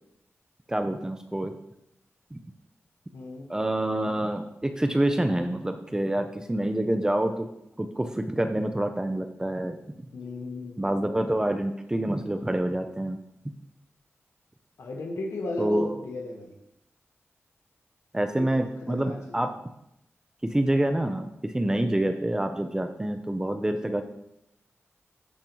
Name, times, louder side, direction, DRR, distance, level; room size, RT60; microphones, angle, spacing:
voice 1, 0.7-1.5 2.3-2.4 3.5-7.5 7.8-9.7 10.8-13.2 15.6-15.9 18.1-19.5 20.4-24.0, right 1 dB, 15° right, 7 dB, 0.5 m, -27 dB
voice 2, 3.1-3.4 10.1-10.9 14.8-16.5 18.4-18.5 18.9-19.2, left 2 dB, 80° left, 1 dB, 1.2 m, -34 dB
13.5 x 5.2 x 3.0 m, 0.80 s
wide cardioid pair, 100°, 5 cm